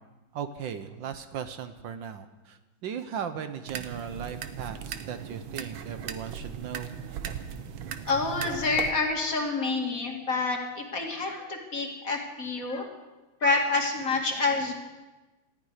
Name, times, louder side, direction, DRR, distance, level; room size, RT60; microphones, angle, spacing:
voice 1, 0.3-6.9, right 8 dB, 70° right, 10 dB, 1.5 m, -37 dB
sound 1, 3.7-8.9, right 8 dB, 85° right, 1.7 m, -38 dB
voice 2, 8.1-12.8 13.4-14.7, left 3 dB, 40° left, 1 dB, 2.5 m, -28 dB
18.5 x 14.5 x 4.9 m, 1.1 s
omnidirectional pair, 2.2 m